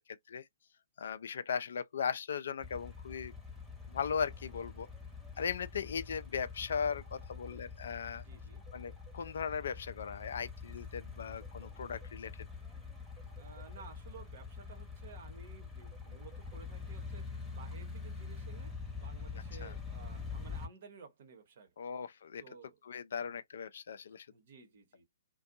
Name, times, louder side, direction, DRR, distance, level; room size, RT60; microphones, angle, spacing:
voice 1, 1.0-3.3 3.9-4.9 5.4-8.2 8.7-12.3 19.6-19.7 21.8-22.4 22.8-24.3, left 6 dB, 65° left, 0.4 m, -38 dB
sound 1, 2.6-20.7, left 5 dB, ahead, 1.0 m, -45 dB
sound 2, 6.9-7.6 8.6-9.3 11.3-12.1 13.1-13.8 15.8-16.6, right 6 dB, 15° right, 0.8 m, -60 dB
voice 2, 8.2-8.6 13.3-18.7 19.0-21.7 22.4-22.8 24.1-25.0, right 5 dB, 55° right, 1.0 m, -54 dB
2.6 x 2.2 x 2.5 m
figure-of-eight pair, 125°, 0 cm